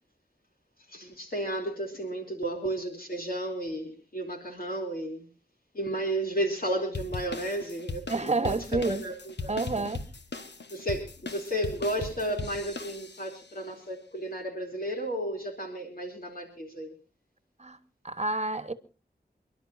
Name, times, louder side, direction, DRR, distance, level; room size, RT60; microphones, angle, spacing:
voice 1, 0.9-5.3 5.7-8.1 8.4-9.9 10.7-16.9, right 1 dB, 55° left, 3.1 m, -33 dB
sound 1, 6.9-13.4, left 3 dB, 80° left, 1.3 m, -39 dB
voice 2, 8.1-9.0 9.5-10.0 17.6-17.8 18.0-18.7, right 3 dB, 40° right, 1.3 m, -29 dB
28.5 x 11.5 x 2.7 m
wide cardioid pair, 60°, 18 cm